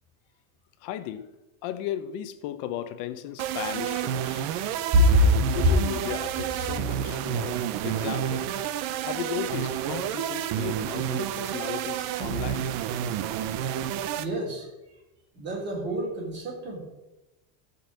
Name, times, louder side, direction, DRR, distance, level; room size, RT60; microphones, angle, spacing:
voice 1, 0.8-1.3 1.6-4.5 5.5-8.5 9.0-12.7, left 11 dB, 45° left, 0.8 m, -35 dB
sound 1, 3.4-14.3, right 10 dB, 40° right, 0.7 m, -30 dB
voice 2, 4.9-5.3 14.2-14.7 15.3-16.8, equal, 25° right, 3.7 m, -24 dB
13.5 x 5.5 x 7.5 m
supercardioid pair, 170°, 42 cm